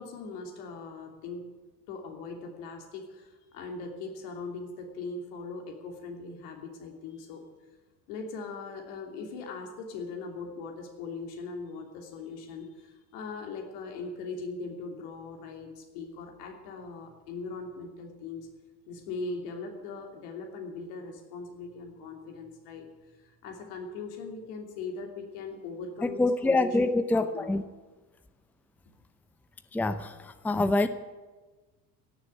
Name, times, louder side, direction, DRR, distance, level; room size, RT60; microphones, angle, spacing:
voice 1, 0.0-1.5 1.9-7.4 8.1-18.5 18.9-22.9 23.2-27.6, left 4 dB, 70° left, 2 dB, 3.0 m, -40 dB
voice 2, 26.0-27.6 29.7-30.9, left 2 dB, 5° left, 11 dB, 0.7 m, -26 dB
16.5 x 7.3 x 9.4 m, 1.3 s
hypercardioid pair, 80°, 48 cm